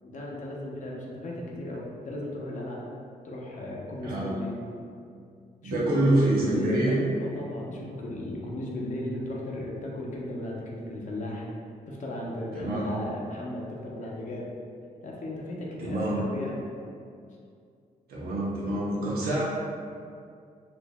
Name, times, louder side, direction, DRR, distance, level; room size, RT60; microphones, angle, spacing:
voice 1, 0.0-2.8 3.2-4.5 5.6-6.9 7.2-11.5 11.9-14.5 15.0-16.6, left 1 dB, 55° left, -3 dB, 0.7 m, -35 dB
voice 2, 4.0-4.3 5.6-7.0 12.5-12.9 15.8-16.2 18.1-19.4, right 1 dB, 85° right, -6 dB, 0.9 m, -26 dB
4.4 x 2.5 x 2.2 m, 2.3 s
cardioid pair, 95°, 15 cm